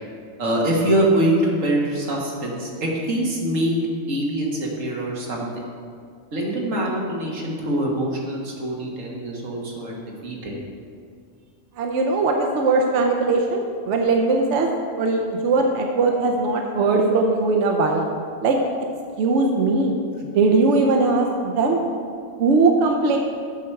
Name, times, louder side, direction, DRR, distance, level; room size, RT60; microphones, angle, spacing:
voice 1, 0.4-3.7 4.1-5.5 6.3-10.5, right 1 dB, 90° right, -2 dB, 1.7 m, -24 dB
voice 2, 11.8-14.7 15.0-18.1 18.4-18.6 19.2-19.9 20.2-21.8 22.4-23.2, right 3 dB, 70° right, 2 dB, 1.0 m, -20 dB
7.6 x 4.5 x 6.5 m, 2.2 s
omnidirectional pair, 1.3 m